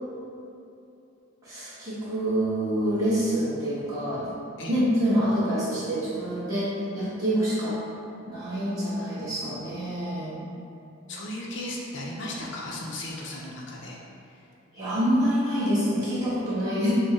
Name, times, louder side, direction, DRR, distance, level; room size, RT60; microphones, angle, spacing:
voice 1, 1.4-4.3 4.7-7.8 8.3-10.4 14.7-16.9, equal, 15° right, -12 dB, 1.4 m, -26 dB
voice 2, 10.2-10.6 11.1-14.0, left 1 dB, 55° left, -3 dB, 0.6 m, -36 dB
6.5 x 2.2 x 3.6 m, 2.7 s
head